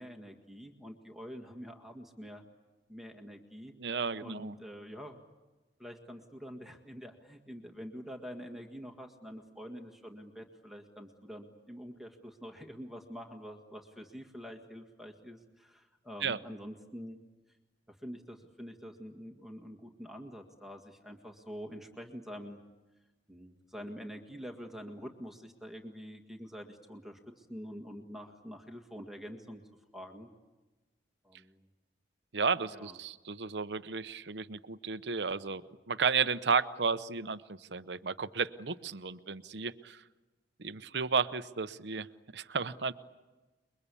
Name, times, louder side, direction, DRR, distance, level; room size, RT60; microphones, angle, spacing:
voice 1, 0.0-2.4 2.9-3.7 4.2-5.2 5.8-17.2 17.5-17.6 17.9-22.6 23.3-29.6 29.9-30.3 31.2-31.6 32.7-33.0, equal, ahead, 3 dB, 1.8 m, -46 dB
voice 2, 3.8-4.5 16.2-16.4 32.3-35.6 35.9-40.0 40.6-42.1 42.3-42.9, right 5 dB, 75° right, 12 dB, 0.8 m, -33 dB
29.0 x 22.5 x 8.4 m, 1.2 s
head